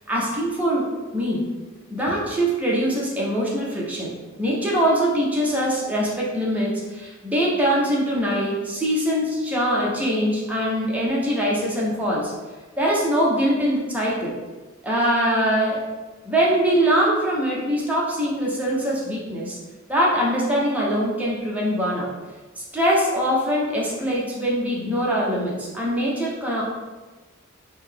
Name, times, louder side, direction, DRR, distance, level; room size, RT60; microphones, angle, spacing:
voice 1, 0.1-1.4 1.9-12.3 12.8-14.4 14.8-15.8 16.2-19.6 19.9-22.1 22.6-26.6, equal, 5° right, -5 dB, 0.7 m, -23 dB
3.8 x 2.1 x 3.3 m, 1.2 s
head